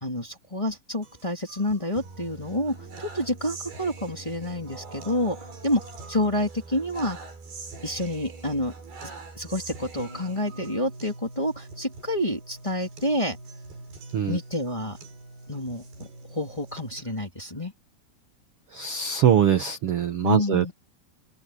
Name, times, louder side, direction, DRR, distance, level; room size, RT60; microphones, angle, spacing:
voice 1, 0.0-5.4 5.6-5.8 6.1-7.2 7.8-8.7 9.3-13.4 14.3-15.0 15.5-17.7 20.2-20.7, left 1 dB, 10° left, 2.5 m, -28 dB
sound 1, 1.0-17.0, right 3 dB, 85° right, 8.7 m, -43 dB
voice 2, 18.7-20.7, right 9 dB, 60° right, 1.6 m, -22 dB
open air
omnidirectional pair, 4.4 m